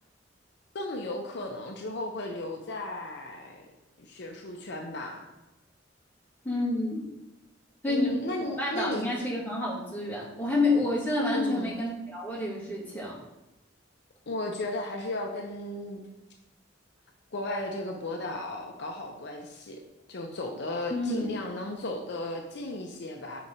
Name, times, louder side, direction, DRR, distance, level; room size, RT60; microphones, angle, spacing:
voice 1, 0.7-3.7 4.0-5.2 7.9-9.1 11.3-11.7 14.3-16.0 17.3-19.8 20.1-23.4, left 2 dB, 60° left, 3 dB, 0.6 m, -35 dB
voice 2, 6.4-7.0 7.8-8.1 8.6-13.2 20.9-21.3, left 2 dB, 10° left, -7 dB, 2.0 m, -28 dB
6.0 x 3.9 x 4.3 m, 1.0 s
head